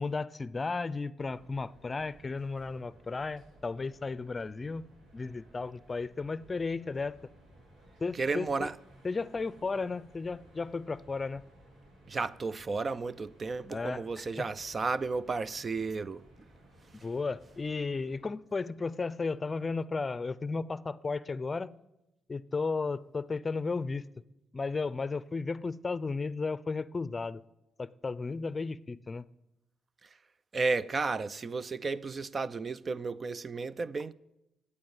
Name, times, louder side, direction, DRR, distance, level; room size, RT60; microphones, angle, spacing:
voice 1, 0.0-4.8 5.1-7.1 8.0-8.7 9.0-11.4 13.7-14.4 17.0-21.8 22.3-24.0 24.5-27.4 27.8-29.3, left 4 dB, 30° left, 0.6 m, -34 dB
sound 1, 1.2-18.2, right 1 dB, 85° right, 7.7 m, -58 dB
voice 2, 8.1-8.7 12.1-16.2 30.5-34.1, right 4 dB, 40° right, 0.5 m, -33 dB
14.0 x 8.4 x 9.6 m
cardioid pair, 90°, 0 cm